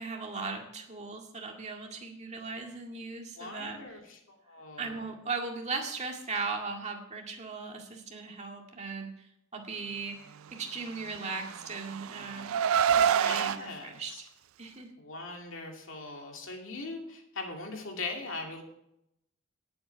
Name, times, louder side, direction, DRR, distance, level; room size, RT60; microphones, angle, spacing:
voice 1, 0.0-3.9 4.8-9.1 9.5-10.2 10.5-12.6 12.9-14.3 14.6-14.9, right 4 dB, 35° right, 2 dB, 2.0 m, -38 dB
voice 2, 3.4-5.0 13.2-14.2 15.0-18.6, left 3 dB, 65° left, 2 dB, 2.6 m, -40 dB
Car, 11.1-13.6, right 8 dB, 75° right, 0.4 m, -27 dB
19.0 x 7.9 x 4.6 m, 0.79 s
head